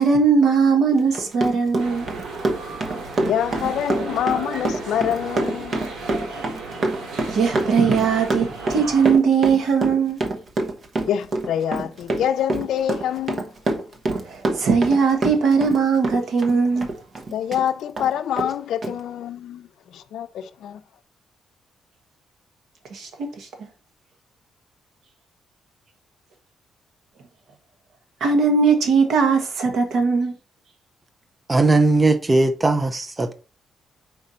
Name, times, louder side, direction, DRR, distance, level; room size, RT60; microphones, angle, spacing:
voice 1, 0.0-2.1 7.3-10.2 14.2-16.9 22.9-23.7 28.2-30.3, right 5 dB, 60° right, 1.4 m, -19 dB
Run, 1.0-17.6 18.0-18.1 18.4-18.5 18.8-18.9, right 2 dB, 40° right, 1.0 m, -26 dB
sound 1, 1.8-9.2, right 3 dB, 85° right, 2.2 m, -34 dB
voice 2, 3.2-5.9 11.1-13.4 17.3-20.8, left 10 dB, 80° left, 0.5 m, -26 dB
voice 3, 31.5-33.3, right 2 dB, 15° right, 0.5 m, -18 dB
5.2 x 4.5 x 4.2 m
cardioid pair, 150°, 0 cm